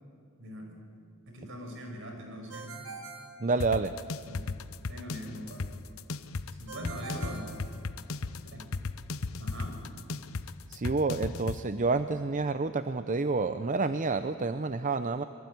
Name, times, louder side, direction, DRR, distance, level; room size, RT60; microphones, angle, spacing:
voice 1, 0.4-0.8 1.3-2.8 4.3-4.5 4.9-5.7 6.5-7.6 8.5-8.8 9.4-9.9, equal, 60° right, 3 dB, 5.8 m, -42 dB
Ringtone, 2.5-4.2 6.7-8.4, right 4 dB, 75° right, 3.3 m, -45 dB
voice 2, 3.4-3.9 10.7-15.2, right 3 dB, 35° right, 11 dB, 0.6 m, -29 dB
sound 1, 3.6-11.6, left 3 dB, 70° left, 0.9 m, -36 dB
25.5 x 22.0 x 9.5 m, 2.2 s
head